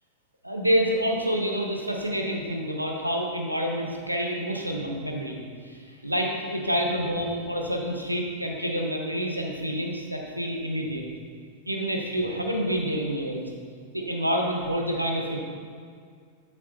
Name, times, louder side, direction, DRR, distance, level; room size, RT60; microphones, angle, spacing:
voice 1, 0.4-5.4 5.7-5.8 6.0-11.0 11.7-13.5 13.9-15.4, equal, 90° right, 1 dB, 0.8 m, -28 dB
8.2 x 6.4 x 2.9 m, 2.1 s
figure-of-eight pair, 90°, 0 cm